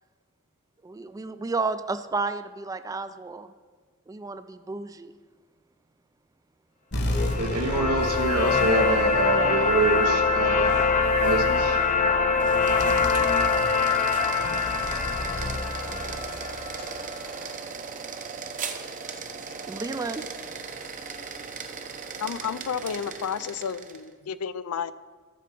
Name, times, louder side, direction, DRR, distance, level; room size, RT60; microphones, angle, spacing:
voice 1, 0.8-3.5 4.1-5.1 19.7-20.3, right 3 dB, 15° right, 11 dB, 0.3 m, -32 dB
sound 1, 6.9-17.8, left 1 dB, 50° left, 1.3 m, -34 dB
sound 2, 7.1-17.2, left 5 dB, 35° left, 0.7 m, -24 dB
voice 2, 7.4-10.8 11.2-11.8, right 3 dB, 85° right, 5 dB, 1.1 m, -26 dB
sound 3, 12.3-24.1, right 5 dB, 35° right, 0.7 m, -38 dB
voice 3, 22.2-24.9, left 7 dB, 80° left, 16 dB, 0.4 m, -31 dB
12.5 x 4.8 x 6.0 m, 1.5 s
head